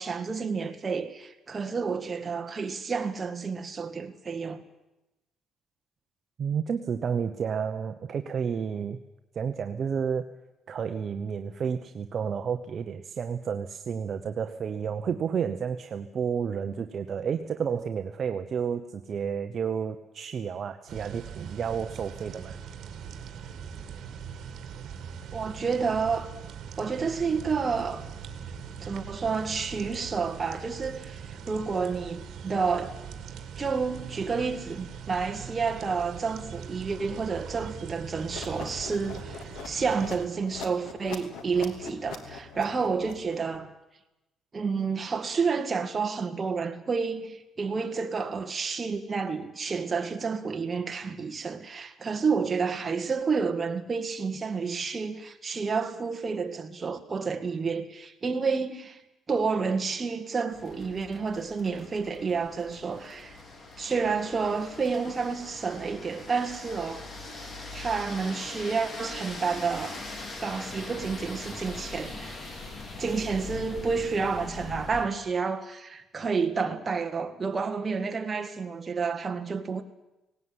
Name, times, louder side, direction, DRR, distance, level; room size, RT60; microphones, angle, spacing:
voice 1, 0.0-4.6 25.3-26.3 26.8-28.0 28.8-33.0 33.6-43.7 44.5-59.0 59.3-63.4 63.8-67.0 67.7-70.0 70.4-72.5 73.0-79.8, right 5 dB, 25° right, 1.9 m, -30 dB
voice 2, 6.4-9.0 9.3-10.3 10.7-22.6, right 7 dB, 40° right, 0.9 m, -31 dB
sound 1, 20.9-40.3, right 7 dB, 60° right, 2.6 m, -41 dB
sound 2, 38.3-43.6, left 6 dB, 80° left, 2.7 m, -42 dB
sound 3, 60.5-75.1, left 2 dB, 30° left, 3.3 m, -41 dB
18.5 x 18.0 x 9.7 m
cardioid pair, 140°, 0 cm